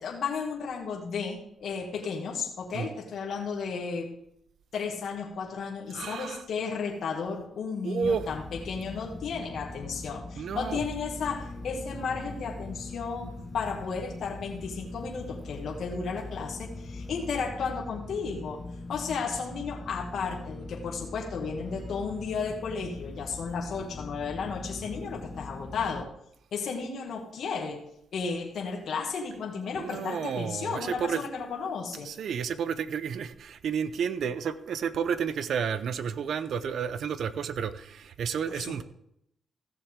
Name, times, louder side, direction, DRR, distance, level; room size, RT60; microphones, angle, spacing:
voice 1, 0.0-4.1 4.7-18.6 18.9-26.1 26.5-27.8 28.1-32.1 38.5-38.8, left 5 dB, 65° left, 0 dB, 1.9 m, -34 dB
voice 2, 5.9-6.4 7.8-8.3 10.4-10.8 29.7-31.2 31.9-38.8, right 7 dB, 70° right, 14 dB, 0.7 m, -31 dB
sound 1, 8.0-26.0, left 2 dB, 25° left, 1.1 m, -41 dB
15.5 x 7.1 x 3.7 m, 0.75 s
cardioid pair, 95°, 0 cm